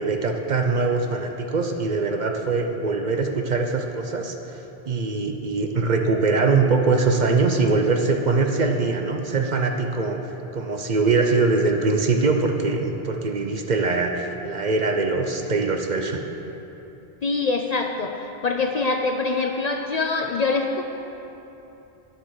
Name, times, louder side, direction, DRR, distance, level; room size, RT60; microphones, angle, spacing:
voice 1, 0.0-4.4 4.9-16.2, right 3 dB, 50° right, 4 dB, 0.8 m, -22 dB
voice 2, 17.2-20.8, left 3 dB, 50° left, 4 dB, 0.5 m, -24 dB
9.3 x 7.6 x 6.4 m, 3.0 s
omnidirectional pair, 1.0 m